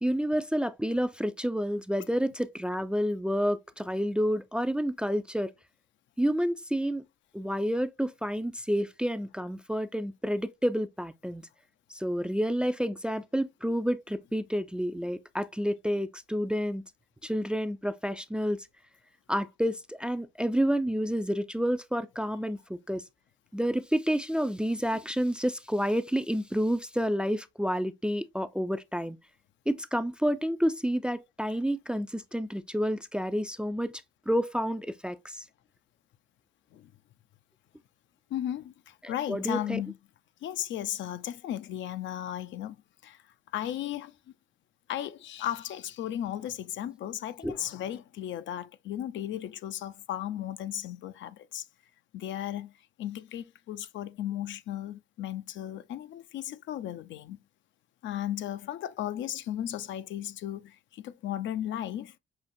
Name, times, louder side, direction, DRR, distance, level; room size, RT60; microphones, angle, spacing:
voice 1, 0.0-5.5 6.2-7.0 7.3-11.4 11.9-16.8 17.2-18.7 19.3-23.0 23.5-29.2 29.7-35.4 39.0-39.8 47.4-47.6, equal, 5° right, 0.3 m, -29 dB
voice 2, 38.3-40.0 40.4-42.8 43.0-43.2 43.5-44.2 44.9-51.7 52.1-52.7 53.0-57.4 58.0-62.1, left 11 dB, 70° left, 0.5 m, -35 dB
5.6 x 2.8 x 2.5 m
cardioid pair, 90°, 20 cm